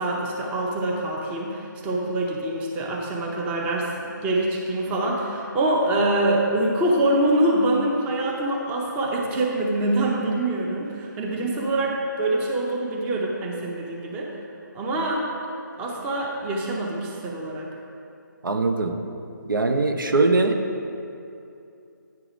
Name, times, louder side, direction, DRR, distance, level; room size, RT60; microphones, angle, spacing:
voice 1, 0.0-14.3 14.7-15.3 15.8-17.7, right 1 dB, 10° right, -1 dB, 0.6 m, -25 dB
voice 2, 18.4-19.0 19.5-20.6, right 3 dB, 85° right, 5 dB, 0.7 m, -21 dB
9.2 x 4.8 x 5.0 m, 2.6 s
figure-of-eight pair, 150°, 11 cm